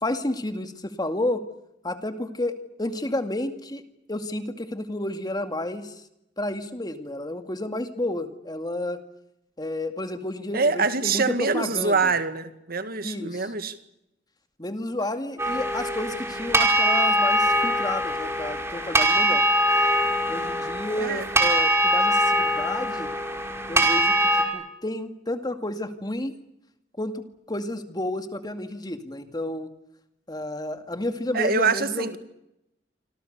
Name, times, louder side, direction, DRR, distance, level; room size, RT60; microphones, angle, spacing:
voice 1, 0.0-1.4 1.8-3.8 4.1-6.0 6.4-9.0 9.6-12.1 13.0-13.5 14.6-19.4 20.3-23.1 23.7-26.3 27.0-29.7 30.3-32.2, left 1 dB, 25° left, 8 dB, 2.2 m, -31 dB
voice 2, 10.5-13.8 21.0-21.2 31.3-32.2, right 4 dB, 55° right, 10 dB, 2.0 m, -25 dB
sound 1, 15.4-24.5, right 1 dB, 15° right, 4.9 m, -22 dB
28.0 x 26.5 x 6.8 m, 0.85 s
head